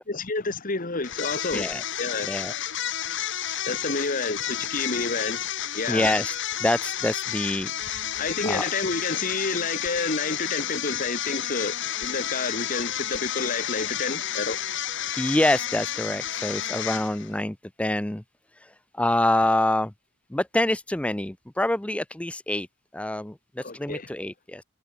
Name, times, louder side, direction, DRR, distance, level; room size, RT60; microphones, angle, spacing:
voice 1, 0.1-1.7 2.0-2.3 3.7-5.5 5.7-6.1 8.2-14.6 23.6-24.1, left 3 dB, 40° left, 1.5 m, -29 dB
sound 1, 1.0-17.4, left 11 dB, 55° left, 1.2 m, -31 dB
voice 2, 5.9-7.7 8.4-8.6 15.2-18.2 18.6-19.9 20.3-22.7 22.9-24.6, left 1 dB, 5° left, 0.4 m, -26 dB
head